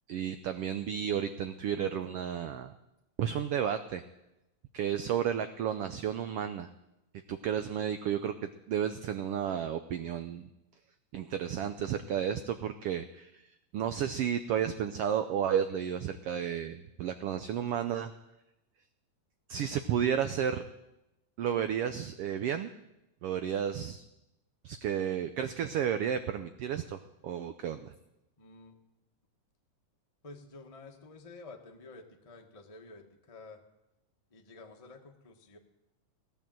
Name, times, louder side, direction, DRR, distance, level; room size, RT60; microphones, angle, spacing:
voice 1, 0.1-2.7 3.2-4.0 4.7-6.7 7.3-10.5 11.1-13.5 13.7-18.1 19.5-20.6 21.4-22.7 23.2-24.0 24.6-27.9, right 9 dB, 80° right, 10 dB, 1.3 m, -32 dB
voice 2, 28.4-28.8 30.2-33.6 34.3-35.6, left 3 dB, 35° left, 3 dB, 0.5 m, -50 dB
17.0 x 10.5 x 7.6 m, 0.93 s
omnidirectional pair, 3.4 m